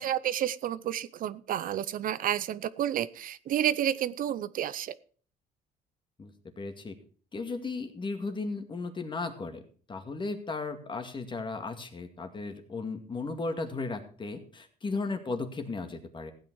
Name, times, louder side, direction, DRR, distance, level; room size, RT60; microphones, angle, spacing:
voice 1, 0.0-5.0, right 11 dB, 55° right, 16 dB, 0.6 m, -30 dB
voice 2, 6.6-7.0 7.3-9.6 9.9-16.3, left 3 dB, 30° left, 6 dB, 2.1 m, -35 dB
15.5 x 8.9 x 4.7 m, 0.43 s
cardioid pair, 110°, 17 cm